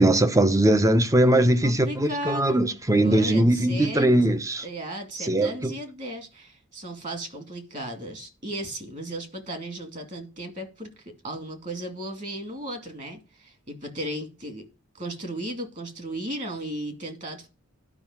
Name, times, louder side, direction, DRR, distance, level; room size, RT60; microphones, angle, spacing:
voice 1, 0.0-4.7 5.2-5.7, right 1 dB, 15° right, 0.8 m, -20 dB
voice 2, 1.6-2.6 3.0-4.4 4.6-14.6 14.9-17.5, right 1 dB, 40° right, 2.4 m, -35 dB
11.0 x 5.6 x 7.3 m
head